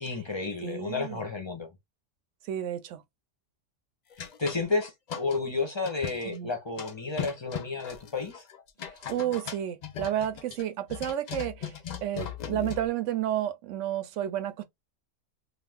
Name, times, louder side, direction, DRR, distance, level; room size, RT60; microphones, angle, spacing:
voice 1, 0.0-1.7 4.4-8.4, left 3 dB, 30° left, 0.5 m, -31 dB
voice 2, 0.6-1.3 2.4-3.0 6.2-6.5 8.9-14.6, right 11 dB, 75° right, 0.9 m, -31 dB
sound 1, 4.1-5.4 5.8-6.4 6.8-12.9, left 8 dB, 90° left, 0.3 m, -38 dB
2.5 x 2.4 x 3.3 m
omnidirectional pair, 1.3 m